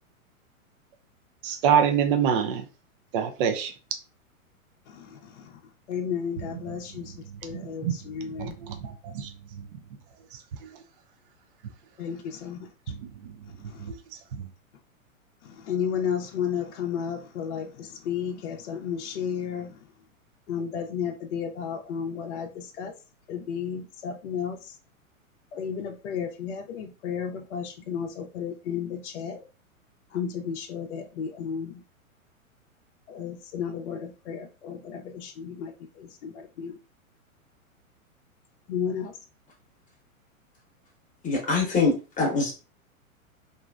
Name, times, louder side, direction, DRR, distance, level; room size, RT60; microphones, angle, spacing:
voice 1, 1.4-2.6 3.1-3.7 6.5-6.6 7.5-7.9 8.4-9.3, right 8 dB, 40° right, 0.4 m, -25 dB
voice 2, 4.9-5.5 5.9-7.1 7.4-8.5 12.0-12.7 13.7-13.8 15.5-19.7 20.5-22.9 23.3-24.6 25.5-29.4 30.1-31.8 33.1-36.8 38.7-39.1, left 7 dB, 55° left, 0.6 m, -33 dB
voice 3, 41.2-42.5, left 3 dB, 20° left, 0.9 m, -24 dB
2.9 x 2.6 x 2.3 m
figure-of-eight pair, 105°, 42 cm